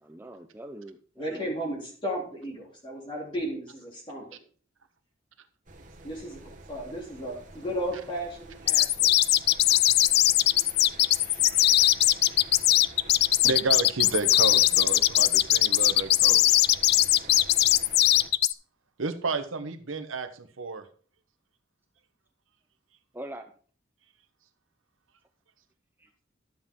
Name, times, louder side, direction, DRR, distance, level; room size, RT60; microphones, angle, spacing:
voice 1, 0.0-1.6 23.1-23.5 26.0-26.1, right 1 dB, 10° right, 5 dB, 0.6 m, -43 dB
voice 2, 1.2-4.2 6.0-9.1, equal, 25° left, -2 dB, 3.2 m, -34 dB
sound 1, 5.7-18.3, right 2 dB, 40° right, 1.4 m, -48 dB
sound 2, 8.7-18.5, left 14 dB, 55° left, 0.3 m, -20 dB
voice 3, 11.2-11.9 13.4-16.6 19.0-20.8, right 4 dB, 90° right, 9 dB, 1.1 m, -32 dB
12.0 x 7.5 x 3.7 m, 0.43 s
head